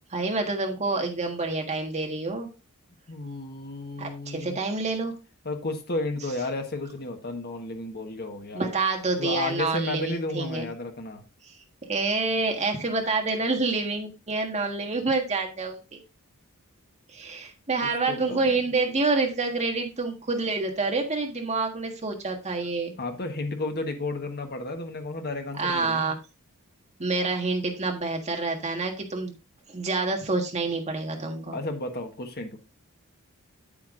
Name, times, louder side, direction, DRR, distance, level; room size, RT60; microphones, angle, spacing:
voice 1, 0.1-2.5 4.0-5.1 8.5-10.7 11.4-11.5 11.9-16.0 17.1-22.9 25.6-26.2 27.0-29.3 29.7-31.6, right 3 dB, 30° right, 1.6 m, -27 dB
voice 2, 3.1-4.6 5.4-8.7 9.2-11.2 17.8-18.5 23.0-26.1 31.5-32.6, left 2 dB, 45° left, 1.4 m, -33 dB
8.7 x 8.1 x 2.6 m
head